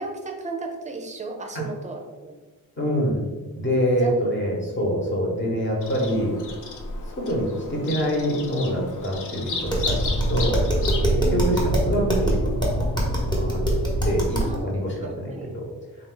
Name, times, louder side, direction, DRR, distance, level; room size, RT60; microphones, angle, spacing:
voice 1, 0.0-2.4 4.0-4.2 11.2-11.7 14.4-15.5, right 3 dB, 20° right, 3 dB, 0.5 m, -35 dB
voice 2, 2.8-3.2 3.5-6.3 7.2-10.6 11.1-12.9 13.2-13.7 14.0-15.7, equal, 30° left, -2 dB, 1.2 m, -25 dB
Bird vocalization bird call bird song, 5.8-11.1, left 4 dB, 55° left, 0.6 m, -34 dB
Tap, 9.6-14.6, right 1 dB, 10° left, 1.0 m, -23 dB
3.8 x 2.6 x 3.8 m, 1.2 s
cardioid pair, 120°, 36 cm